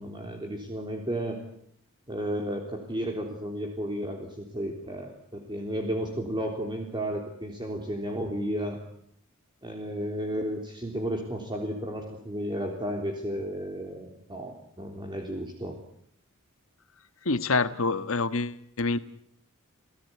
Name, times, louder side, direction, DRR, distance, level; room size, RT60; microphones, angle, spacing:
voice 1, 0.0-1.4 2.1-8.8 9.6-15.8, equal, 20° right, 2 dB, 3.6 m, -33 dB
voice 2, 17.2-19.0, left 3 dB, 65° left, 13 dB, 1.5 m, -26 dB
30.0 x 18.0 x 9.7 m, 0.70 s
head